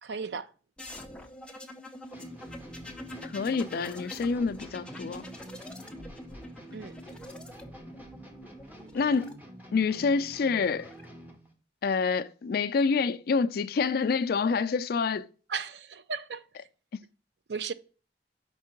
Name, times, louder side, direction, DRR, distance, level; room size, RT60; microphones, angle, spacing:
voice 1, 0.0-0.5 6.7-6.9 15.5-16.4 17.5-17.7, right 5 dB, 65° right, 0.5 m, -35 dB
sound 1, 0.8-9.3 10.4-11.0, left 1 dB, 5° left, 0.6 m, -45 dB
sound 2, 2.1-11.5, right 1 dB, 10° right, 1.1 m, -48 dB
voice 2, 3.2-5.2 8.9-9.4 9.7-10.9 11.8-15.3, left 5 dB, 55° left, 0.4 m, -27 dB
5.3 x 3.7 x 5.8 m
head